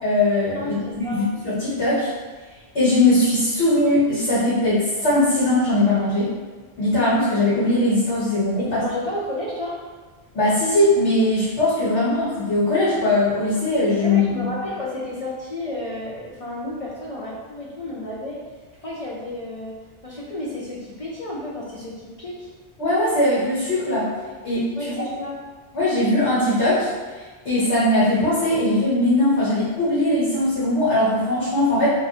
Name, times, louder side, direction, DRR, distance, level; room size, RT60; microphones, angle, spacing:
voice 1, 0.0-2.1 2.7-6.3 6.8-8.8 10.3-14.5 22.8-24.1 24.4-24.9 25.7-26.9 27.4-31.9, left 1 dB, 65° left, -11 dB, 1.5 m, -20 dB
voice 2, 0.5-1.2 8.6-9.8 12.0-12.1 14.0-18.4 18.8-19.8 20.0-22.5 24.7-25.4, left 1 dB, 45° left, -6 dB, 0.5 m, -31 dB
2.6 x 2.4 x 4.1 m, 1.3 s
omnidirectional pair, 1.2 m